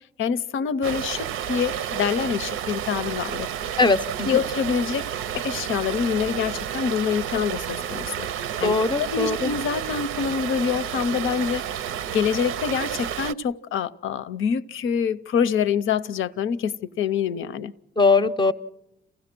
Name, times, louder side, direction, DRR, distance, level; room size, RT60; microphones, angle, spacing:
voice 1, 0.2-3.5 4.2-5.1 5.3-8.3 8.6-11.6 12.1-17.7, left 7 dB, 75° left, 0.7 m, -26 dB
sound 1, 0.8-13.3, right 9 dB, 80° right, 0.6 m, -31 dB
voice 2, 3.8-4.3 8.6-9.5 18.0-18.5, left 3 dB, 20° left, 0.6 m, -20 dB
28.0 x 15.5 x 6.0 m
cardioid pair, 100°, 21 cm